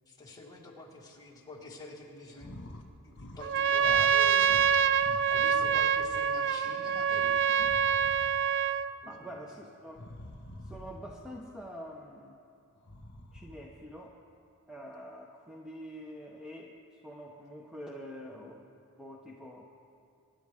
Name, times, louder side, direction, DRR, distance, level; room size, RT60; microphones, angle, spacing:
voice 1, 0.1-2.5 2.8-5.0 5.3-7.9 9.0-9.3, left 2 dB, 15° left, -3 dB, 1.8 m, -47 dB
sound 1, 2.3-2.9 3.1-3.6 3.8-6.2 6.6-8.5 9.9-11.3 12.7-13.8, left 1 dB, 55° left, 1.6 m, -47 dB
Trumpet, 3.4-8.9, right 7 dB, 55° right, 0.3 m, -26 dB
voice 2, 9.0-10.1 10.6-12.4 13.3-14.2 14.7-18.6 19.0-19.6, equal, 5° right, -1 dB, 0.7 m, -46 dB
25.0 x 10.5 x 3.6 m, 2.5 s
head